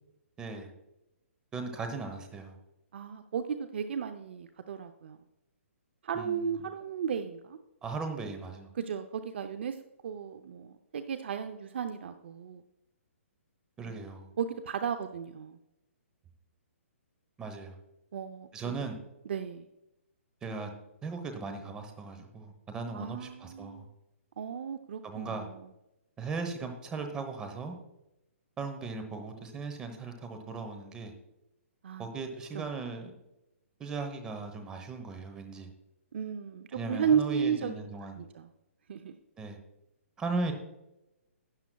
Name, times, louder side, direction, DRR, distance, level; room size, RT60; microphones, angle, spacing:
voice 1, 0.4-0.7 1.5-2.5 6.1-6.4 7.8-8.7 13.8-14.3 17.4-17.8 18.5-19.0 20.4-20.7 21.0-23.8 25.0-25.5 26.2-27.8 28.6-31.1 32.0-33.1 33.8-35.7 36.7-38.3 39.4-39.6 40.2-40.5, right 4 dB, 10° right, 6 dB, 1.0 m, -37 dB
voice 2, 2.9-5.2 6.0-7.6 8.7-9.8 10.0-12.6 13.9-14.0 14.4-15.6 18.1-18.8 19.3-19.7 22.9-23.8 24.4-25.5 31.8-32.1 32.5-32.7 36.1-37.9 38.2-38.5 38.9-39.1, right 7 dB, 50° right, 9 dB, 0.6 m, -34 dB
12.0 x 9.5 x 2.3 m, 0.92 s
hypercardioid pair, 165°, 7 cm